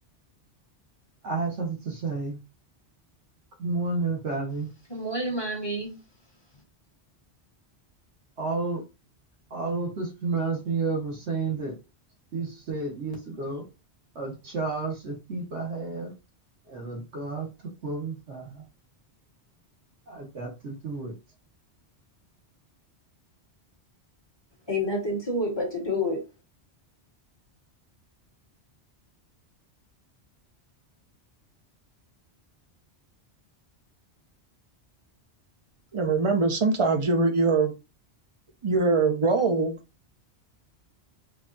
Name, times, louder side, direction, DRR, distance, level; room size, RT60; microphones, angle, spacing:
voice 1, 1.2-2.4 3.6-4.7 8.4-8.8 9.5-11.8 12.3-13.6 14.1-16.1 16.7-18.7 20.1-21.1, right 3 dB, 85° right, 1.5 m, -31 dB
voice 2, 4.9-6.0 24.7-26.2, left 1 dB, 20° left, 1.5 m, -28 dB
voice 3, 35.9-37.7 38.6-39.8, right 3 dB, 35° right, 0.6 m, -22 dB
4.8 x 2.4 x 2.6 m
omnidirectional pair, 1.2 m